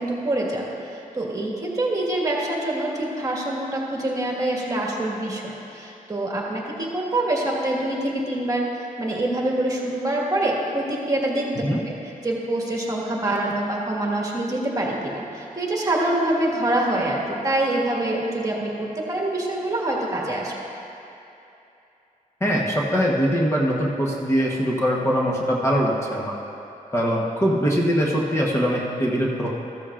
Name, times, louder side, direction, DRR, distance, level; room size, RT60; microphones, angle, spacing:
voice 1, 0.0-11.5 11.8-20.5, right 1 dB, 25° right, -3 dB, 1.7 m, -25 dB
voice 2, 22.4-26.3 26.9-29.5, equal, 20° left, -4 dB, 1.1 m, -22 dB
14.0 x 13.0 x 2.5 m, 2.8 s
wide cardioid pair, 125°, 14 cm